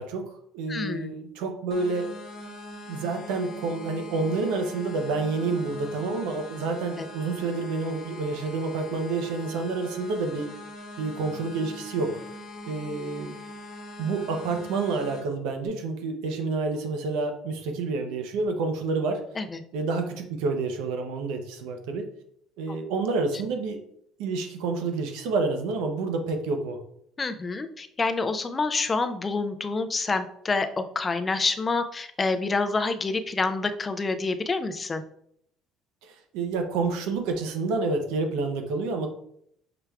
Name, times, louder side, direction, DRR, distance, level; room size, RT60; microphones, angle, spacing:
voice 1, 0.0-2.1 2.9-10.5 11.0-12.2 12.6-13.4 14.0-19.2 19.7-22.0 22.6-23.8 24.2-26.8 36.0-39.1, right 3 dB, 90° right, 5 dB, 0.7 m, -29 dB
voice 2, 0.7-1.1 7.0-7.1 19.4-19.6 22.7-22.8 27.2-35.0, left 3 dB, 20° left, 9 dB, 0.3 m, -27 dB
sound 1, 1.7-15.2, left 1 dB, 45° left, 1.0 m, -42 dB
5.8 x 3.3 x 2.3 m, 0.70 s
cardioid pair, 145°, 0 cm